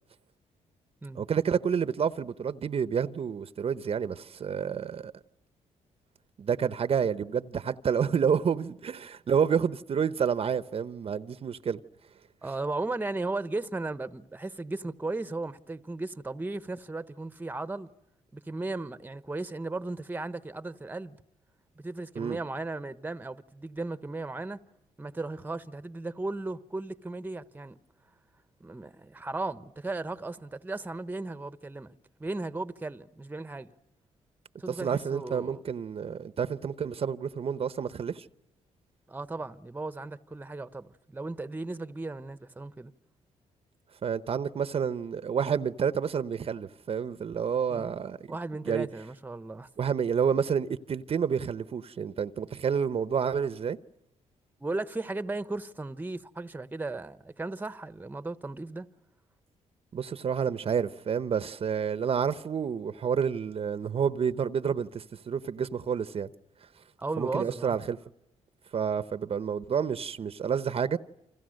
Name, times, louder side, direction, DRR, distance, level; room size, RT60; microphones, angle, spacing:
voice 1, 1.1-5.1 6.4-11.8 22.1-22.4 34.7-38.3 44.0-48.2 48.7-48.9 49.8-53.8 59.9-66.3 67.2-68.0 68.7-71.0, right 7 dB, 50° right, 0.9 m, -29 dB
voice 2, 12.4-17.9 18.3-21.2 21.8-24.6 25.0-27.8 28.6-33.7 34.6-35.6 39.1-42.9 47.7-47.9 48.3-49.7 54.6-58.9 67.0-67.8, right 2 dB, 15° right, 1.1 m, -36 dB
29.5 x 26.0 x 6.5 m
cardioid pair, 95°, 13 cm